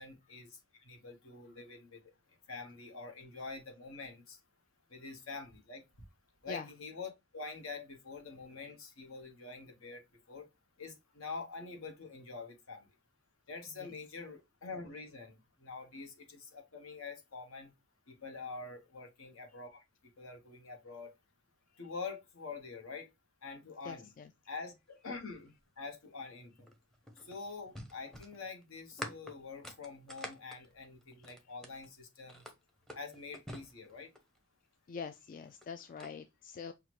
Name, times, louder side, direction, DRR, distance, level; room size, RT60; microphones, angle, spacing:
voice 1, 0.0-2.1 2.5-4.4 4.9-5.8 6.4-10.5 10.8-12.9 13.5-17.7 18.1-21.1 21.8-23.1 23.4-24.1 24.5-26.7 27.2-32.5 32.9-34.1, left 4 dB, 70° left, 1.2 m, -46 dB
voice 2, 23.8-24.3 31.2-31.3 34.9-36.7, left 6 dB, 40° left, 0.3 m, -44 dB
sound 1, 26.6-31.9 32.3-34.4 35.4-36.1, equal, ahead, 0.7 m, -47 dB
5.8 x 2.4 x 3.0 m
head